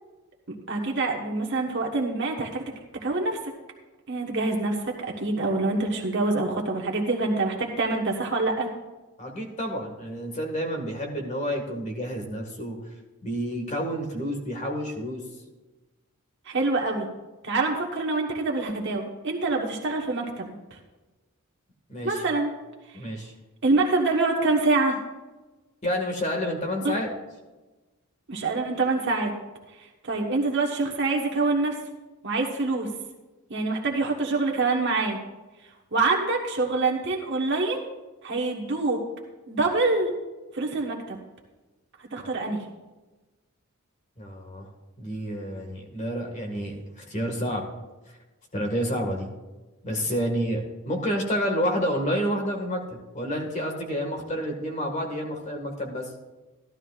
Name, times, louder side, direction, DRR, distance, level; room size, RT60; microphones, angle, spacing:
voice 1, 0.5-2.7 3.0-3.4 4.1-8.7 16.4-17.1 17.4-20.5 22.0-22.5 23.6-25.0 26.8-27.0 28.3-29.3 30.0-31.8 32.2-32.9 33.5-35.2 35.9-37.9 38.2-39.0 39.5-40.1 40.5-41.2 42.1-42.6, right 3 dB, 55° right, 0 dB, 1.3 m, -25 dB
voice 2, 9.2-12.8 13.2-15.2 21.9-22.2 22.9-23.3 25.8-27.1 44.2-44.7 45.0-47.6 48.1-48.2 48.5-49.3 49.8-56.1, equal, 30° left, 2 dB, 1.7 m, -29 dB
14.5 x 12.0 x 2.4 m, 1.2 s
head